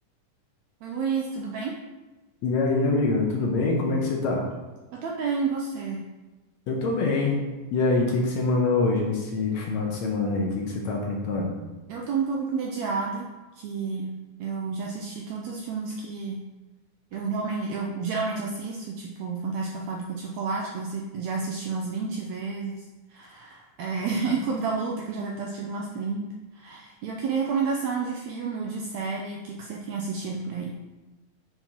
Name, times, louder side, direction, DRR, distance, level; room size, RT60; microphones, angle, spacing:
voice 1, 0.8-1.8 4.9-6.0 11.9-13.3 13.6-16.4 17.1-22.8 23.1-26.3 26.5-30.7, right 4 dB, 85° right, 0 dB, 1.6 m, -30 dB
voice 2, 2.4-4.4 6.7-7.4 7.7-11.5, left 3 dB, 70° left, -1 dB, 1.8 m, -25 dB
8.7 x 4.6 x 2.9 m, 1.1 s
omnidirectional pair, 3.7 m